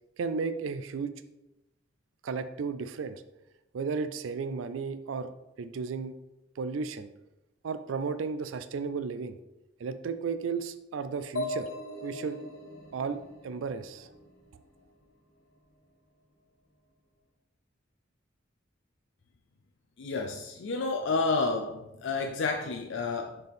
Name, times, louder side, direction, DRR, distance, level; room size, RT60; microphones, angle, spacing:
voice 1, 0.2-1.1 2.2-3.2 3.7-6.1 6.6-7.1 7.6-9.4 9.8-11.7 12.0-12.4 12.9-14.1, right 5 dB, 80° right, 12 dB, 0.4 m, -34 dB
sound 1, 11.4-15.0, left 2 dB, 90° left, 1.3 m, -39 dB
voice 2, 20.0-23.4, left 3 dB, 65° left, 3 dB, 0.5 m, -30 dB
6.4 x 4.4 x 3.5 m, 0.95 s
head